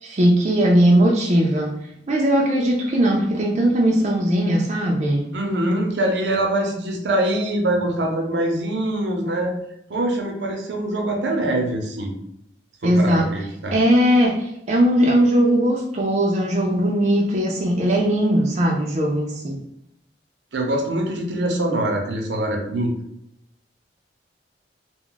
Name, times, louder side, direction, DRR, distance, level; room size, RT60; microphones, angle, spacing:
voice 1, 0.0-1.7 2.1-5.3 12.8-13.3 13.7-19.6, equal, 40° right, -1 dB, 0.4 m, -19 dB
voice 2, 5.3-9.5 9.9-12.1 12.8-13.8 20.5-22.9, right 1 dB, 80° right, 1 dB, 0.6 m, -23 dB
2.3 x 2.1 x 3.8 m, 0.75 s
head